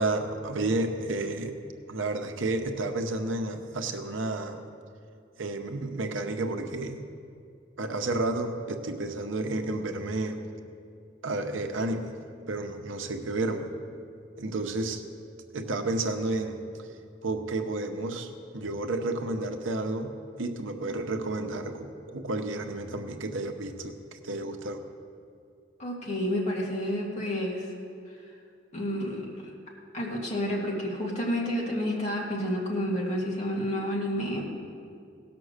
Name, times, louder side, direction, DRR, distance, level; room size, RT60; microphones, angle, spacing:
voice 1, 0.0-1.5 1.9-4.6 5.4-7.0 7.8-10.4 11.2-12.1 12.5-13.7 14.4-15.0 15.5-16.9 17.2-20.1 20.4-24.8, right 2 dB, 85° right, 6 dB, 0.8 m, -31 dB
voice 2, 25.8-27.7 28.7-29.3 29.9-34.5, equal, 35° left, -3 dB, 2.0 m, -30 dB
16.5 x 6.0 x 6.5 m, 2.4 s
head